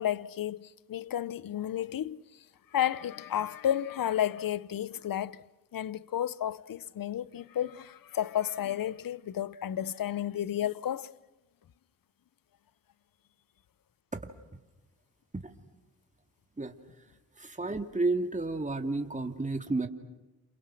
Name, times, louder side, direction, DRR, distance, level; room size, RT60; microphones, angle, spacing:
voice 1, 0.0-2.4 2.7-5.4 5.7-11.1, left 11 dB, 60° left, 0.9 m, -32 dB
voice 2, 16.6-17.1 17.3-19.9, right 3 dB, 20° right, 2.6 m, -32 dB
30.0 x 28.0 x 6.3 m
supercardioid pair, 45°, 39 cm